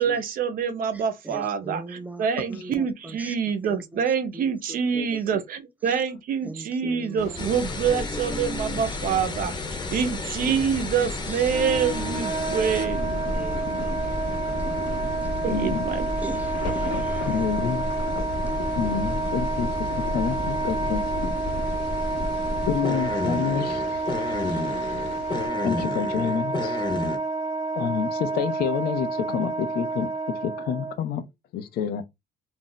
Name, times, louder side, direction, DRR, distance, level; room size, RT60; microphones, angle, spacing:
voice 1, 0.0-9.5 9.9-13.2 15.4-16.1, right 7 dB, 55° right, 0.7 m, -26 dB
voice 2, 0.9-3.4 3.7-5.4 5.9-6.0 6.4-7.5 7.9-9.2 9.8-10.6 11.0-11.5 13.3-14.2 14.5-14.7 15.3-15.4 16.2-17.4, right 2 dB, 10° right, 0.5 m, -40 dB
sound 1, 7.2-25.5, left 4 dB, 80° left, 0.9 m, -38 dB
sound 2, 7.4-27.2, left 2 dB, 25° left, 0.8 m, -32 dB
Wind instrument woodwind instrument, 11.4-30.9, right 3 dB, 30° right, 1.1 m, -29 dB
voice 3, 15.5-15.9 17.3-17.9 18.8-19.9 20.1-21.0 22.7-23.9 25.6-26.8 27.7-31.2 31.5-32.0, left 8 dB, 65° left, 0.5 m, -28 dB
2.5 x 2.0 x 3.8 m
cardioid pair, 110°, 17 cm